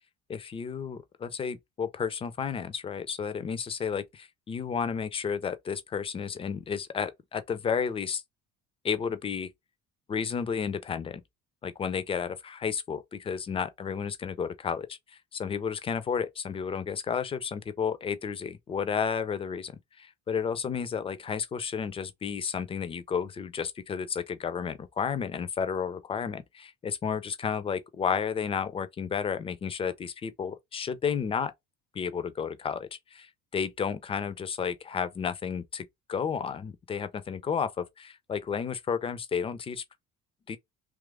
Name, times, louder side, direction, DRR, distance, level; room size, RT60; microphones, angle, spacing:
voice 1, 0.3-8.2 8.8-9.5 10.1-11.2 11.6-15.0 15.3-19.7 20.0-31.5 31.9-39.8 40.5-40.6, left 6 dB, 15° left, 0.3 m, -32 dB
3.0 x 2.4 x 3.3 m
figure-of-eight pair, 55°, 41 cm